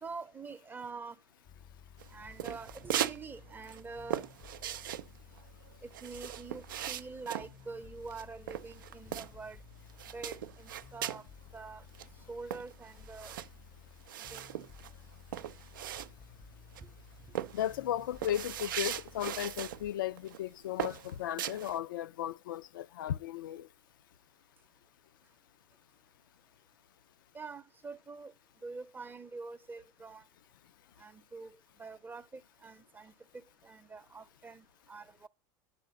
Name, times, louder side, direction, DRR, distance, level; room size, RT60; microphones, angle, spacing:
voice 1, 0.0-1.2 2.1-4.3 5.8-9.6 10.1-11.3 11.5-11.8 12.3-13.3 14.3-14.5 16.8-16.9 27.3-28.3 28.6-30.2 31.0-33.1 33.6-35.3, right 4 dB, 20° right, 0.6 m, -45 dB
sound 1, 1.4-19.9, left 7 dB, 30° left, 0.5 m, -55 dB
sound 2, 2.0-3.2 3.5-9.6 9.9-11.3 11.7-11.8 11.9-16.4 16.7-17.0 17.3-19.8 20.2-20.4 20.8-21.8, right 11 dB, 85° right, 0.4 m, -39 dB
voice 2, 17.5-23.7, left 12 dB, 85° left, 0.4 m, -35 dB
9.8 x 4.0 x 6.8 m
hypercardioid pair, 90°, 11 cm